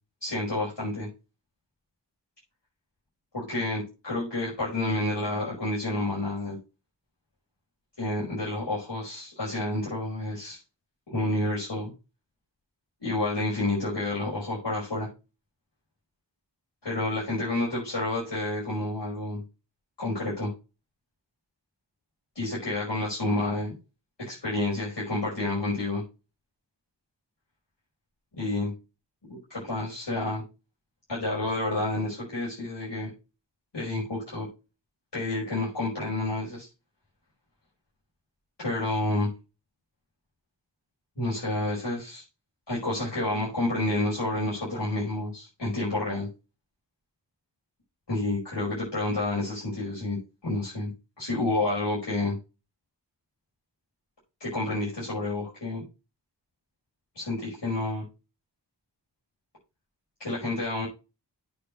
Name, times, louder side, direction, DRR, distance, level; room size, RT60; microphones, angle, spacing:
voice 1, 0.2-1.1 3.3-6.6 8.0-10.6 11.1-11.9 13.0-15.1 16.8-19.4 20.0-20.5 22.4-23.7 24.2-26.0 28.3-28.7 29.3-30.4 31.1-33.1 33.7-34.5 35.1-36.7 38.6-39.3 41.2-42.2 42.7-46.3 48.1-50.9 51.2-52.4 54.4-55.8 57.2-58.0 60.2-60.9, left 2 dB, 75° left, -7 dB, 5.3 m, -29 dB
8.5 x 4.1 x 6.5 m, 0.29 s
wide cardioid pair, 40°, 42 cm